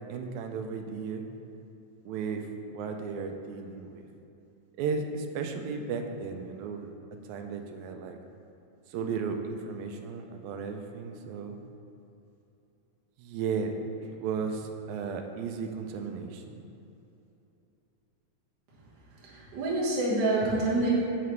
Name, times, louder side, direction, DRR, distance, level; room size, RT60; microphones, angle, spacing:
voice 1, 0.1-1.2 2.1-4.0 4.8-6.9 7.3-8.2 8.9-11.6 13.2-13.8 14.2-16.6, right 5 dB, 80° right, 5 dB, 1.8 m, -35 dB
voice 2, 19.3-20.9, right 2 dB, 50° right, -6 dB, 1.4 m, -27 dB
6.7 x 3.7 x 4.5 m, 2.8 s
omnidirectional pair, 3.5 m